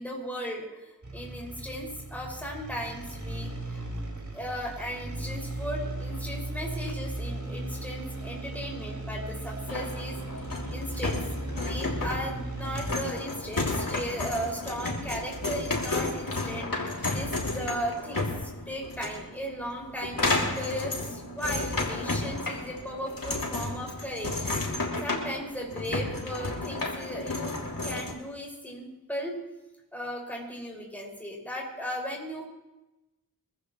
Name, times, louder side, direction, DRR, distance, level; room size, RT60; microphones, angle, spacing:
voice 1, 0.0-3.9 4.3-10.2 10.7-11.2 11.5-24.4 25.0-29.4 29.9-32.4, equal, 5° left, -2 dB, 6.0 m, -36 dB
sound 1, 1.0-13.1, right 2 dB, 50° right, 4.1 m, -36 dB
sound 2, 9.7-28.1, left 2 dB, 65° left, 3.0 m, -32 dB
25.0 x 14.5 x 3.2 m, 1.0 s
wide cardioid pair, 45°, 36 cm